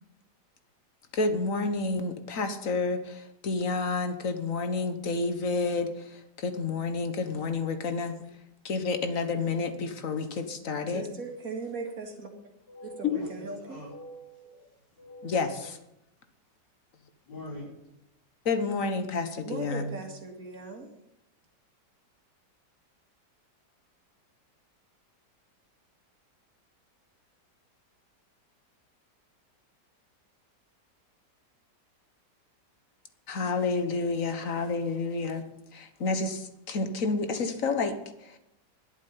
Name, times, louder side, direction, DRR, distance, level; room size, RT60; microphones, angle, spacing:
voice 1, 1.1-8.2 8.6-11.0 13.1-13.2 15.2-15.8 18.4-19.9 33.3-35.4 35.7-38.4, left 3 dB, 50° left, 1.6 m, -30 dB
voice 2, 10.9-12.3 12.8-13.8 19.4-20.9, right 4 dB, 55° right, 2.6 m, -38 dB
voice 3, 12.7-14.7 15.0-15.6 17.2-17.6, left 1 dB, 80° left, 6.0 m, -44 dB
11.0 x 8.4 x 9.4 m
omnidirectional pair, 1.8 m